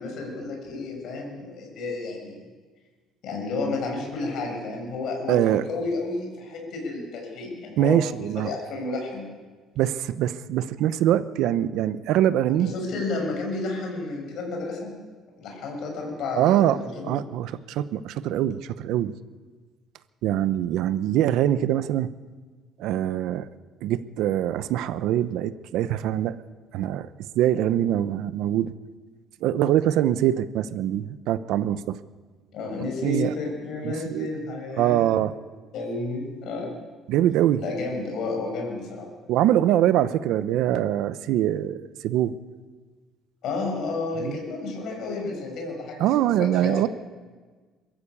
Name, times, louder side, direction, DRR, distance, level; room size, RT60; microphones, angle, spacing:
voice 1, 0.0-2.4 3.2-9.3 12.5-14.9 15.4-17.1 32.5-35.0 35.7-36.7 37.6-39.1 43.4-46.8, left 3 dB, 55° left, 0 dB, 6.9 m, -31 dB
voice 2, 5.3-5.6 7.8-8.5 9.8-12.7 16.4-16.8 17.0-19.2 20.2-22.1 22.8-23.5 23.8-26.4 26.7-27.1 27.3-28.7 29.4-32.0 33.0-33.3 33.8-34.3 34.8-35.3 37.1-37.6 39.3-42.4 44.2-44.4 46.0-46.9, right 12 dB, 65° right, 13 dB, 0.8 m, -23 dB
22.0 x 14.5 x 8.5 m, 1.4 s
cardioid pair, 165°, 0 cm